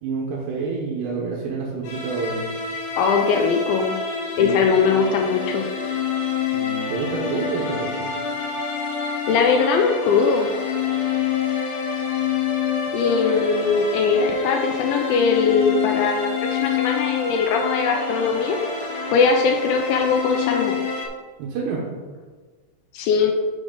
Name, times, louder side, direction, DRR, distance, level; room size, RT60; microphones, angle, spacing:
voice 1, 0.0-2.4 4.3-4.7 6.4-8.1 21.4-21.9, right 4 dB, 80° right, -4 dB, 3.0 m, -28 dB
sound 1, 1.8-21.1, left 6 dB, 70° left, 2.2 m, -27 dB
voice 2, 3.0-4.0 4.4-5.7 9.3-10.5 12.9-18.6 19.1-20.8 22.9-23.3, left 5 dB, 90° left, 3 dB, 2.1 m, -20 dB
7.6 x 5.0 x 3.7 m, 1.4 s
omnidirectional pair, 4.8 m